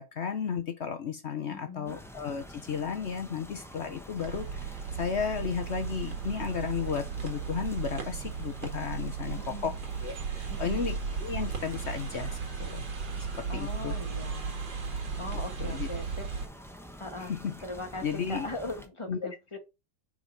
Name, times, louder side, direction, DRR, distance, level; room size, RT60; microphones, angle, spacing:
voice 1, 0.0-9.8 10.0-12.9 13.4-14.0 15.6-15.9 17.2-17.5 18.0-18.5 19.1-19.2, left 6 dB, 60° left, 0.7 m, -34 dB
voice 2, 1.5-2.0 9.4-9.7 10.5-10.9 13.5-14.6 15.2-16.3 17.0-17.3 17.6-19.6, left 2 dB, 20° left, 1.3 m, -40 dB
sound 1, 1.9-18.9, equal, 5° left, 0.5 m, -48 dB
sound 2, 4.2-16.5, right 6 dB, 80° right, 2.5 m, -36 dB
5.1 x 5.0 x 5.4 m
omnidirectional pair, 2.0 m